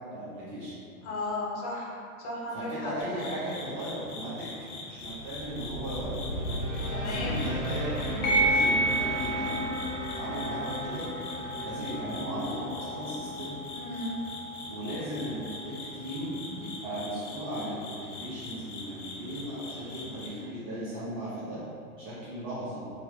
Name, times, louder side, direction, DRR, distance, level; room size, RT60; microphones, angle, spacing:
voice 1, 0.1-0.8 2.5-4.5 4.8-6.3 7.0-9.7 10.1-11.0 11.6-13.6 14.7-21.6 22.0-22.8, equal, 40° right, -10 dB, 1.1 m, -37 dB
voice 2, 1.0-2.9 6.9-7.4 13.7-14.1, left 2 dB, 50° left, -4 dB, 0.9 m, -35 dB
sound 1, 3.0-20.3, left 2 dB, 85° left, 0.8 m, -43 dB
sound 2, 5.0-14.1, equal, 60° right, 1.0 m, -36 dB
sound 3, 8.2-17.2, right 1 dB, 20° left, 0.6 m, -33 dB
3.4 x 2.7 x 2.4 m, 2.4 s
hypercardioid pair, 120°, 43 cm